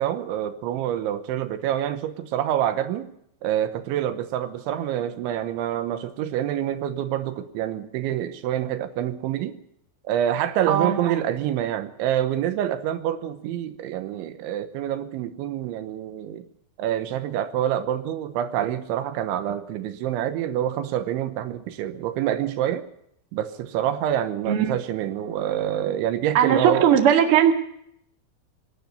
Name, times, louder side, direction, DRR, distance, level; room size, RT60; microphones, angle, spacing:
voice 1, 0.0-3.1 3.4-9.6 10.1-16.4 16.8-22.9 23.3-26.9, right 11 dB, 80° right, 3.2 m, -27 dB
voice 2, 10.7-11.1 24.4-24.7 26.3-27.6, right 9 dB, 55° right, 1.5 m, -19 dB
24.0 x 12.0 x 9.2 m
omnidirectional pair, 5.7 m